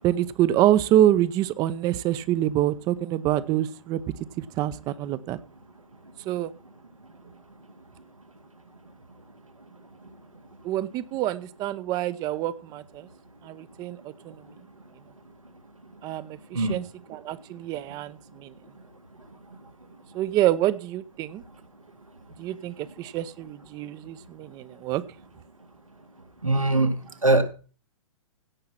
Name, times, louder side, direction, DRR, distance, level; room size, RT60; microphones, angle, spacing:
voice 1, 0.0-4.0 4.4-5.4 6.3-6.5 10.6-13.1 13.4-14.4 16.0-18.5 20.1-21.4 22.4-25.0, right 12 dB, 25° right, 15 dB, 0.7 m, -26 dB
voice 2, 26.4-26.9 27.2-27.4, right 2 dB, 90° right, 6 dB, 2.0 m, -20 dB
16.5 x 5.8 x 5.7 m, 0.36 s
figure-of-eight pair, 115°, 17 cm